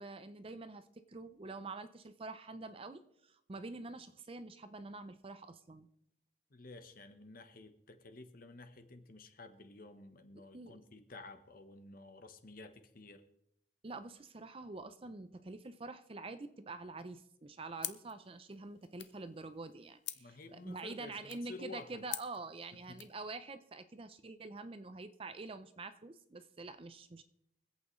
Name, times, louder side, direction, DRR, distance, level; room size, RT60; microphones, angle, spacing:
voice 1, 0.0-5.9 10.5-10.8 13.8-27.2, right 3 dB, 30° right, 11 dB, 0.5 m, -46 dB
voice 2, 6.5-13.2 20.2-22.0 22.9-23.0, left 2 dB, 45° left, 8 dB, 1.0 m, -52 dB
sound 1, 17.8-23.2, left 13 dB, 65° left, 0.7 m, -48 dB
24.5 x 8.4 x 3.1 m, 0.79 s
head